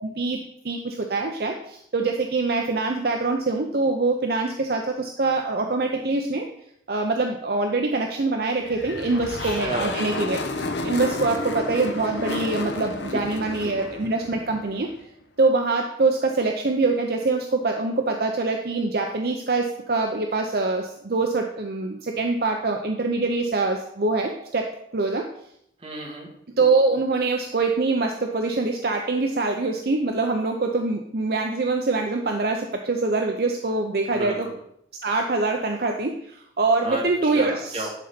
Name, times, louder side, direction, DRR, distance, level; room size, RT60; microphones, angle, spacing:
voice 1, 1.1-1.5 1.9-4.8 5.2-6.4 6.9-10.4 10.9-11.4 11.7-14.9 15.4-17.4 17.6-17.9 18.2-19.6 19.9-20.8 21.1-21.9 22.2-24.3 24.9-25.2 26.6-28.1 28.3-32.6 32.9-34.3 35.0-36.1 36.6-37.5, right 3 dB, 55° right, 3 dB, 0.6 m, -24 dB
sound 1, 8.6-15.0, left 2 dB, 70° left, 0.8 m, -31 dB
voice 2, 9.1-10.0 13.0-13.2 13.6-13.9 25.8-26.3 34.1-34.5 36.8-37.9, right 1 dB, 30° right, -3 dB, 2.0 m, -32 dB
11.0 x 4.1 x 5.1 m, 0.75 s
head